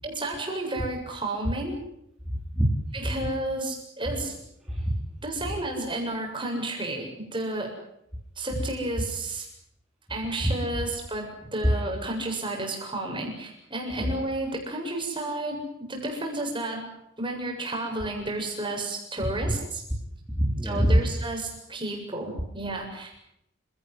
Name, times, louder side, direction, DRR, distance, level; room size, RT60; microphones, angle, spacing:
voice 1, 0.0-1.8 2.9-4.4 5.2-7.7 8.4-9.5 10.1-16.9 17.2-19.8 20.6-23.2, right 2 dB, 20° right, 1 dB, 7.4 m, -32 dB
voice 2, 2.2-2.7 4.7-5.0 10.4-10.5 13.9-14.1 19.4-19.5 19.9-20.0 20.3-21.0, equal, ahead, -4 dB, 4.1 m, -24 dB
29.0 x 18.0 x 9.7 m, 0.79 s
head